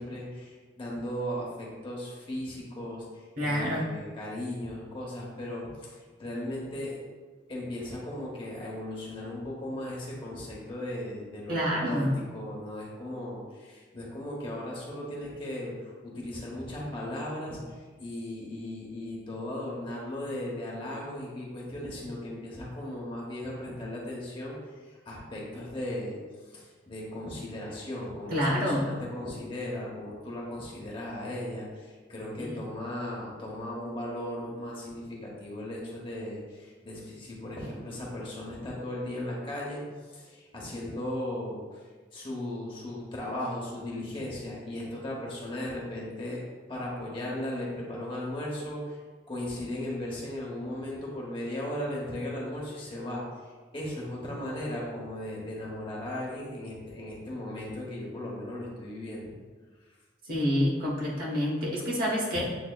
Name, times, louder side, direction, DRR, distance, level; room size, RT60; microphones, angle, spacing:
voice 1, 0.0-6.9 7.5-46.4 46.7-49.0 49.3-59.3 59.8-60.0 62.3-62.4, left 1 dB, 25° left, -4 dB, 0.9 m, -37 dB
voice 2, 3.4-3.9 11.5-12.1 28.3-28.9 32.4-32.5 60.3-62.4, equal, 50° right, -4 dB, 1.0 m, -27 dB
7.8 x 2.7 x 2.3 m, 1.4 s
head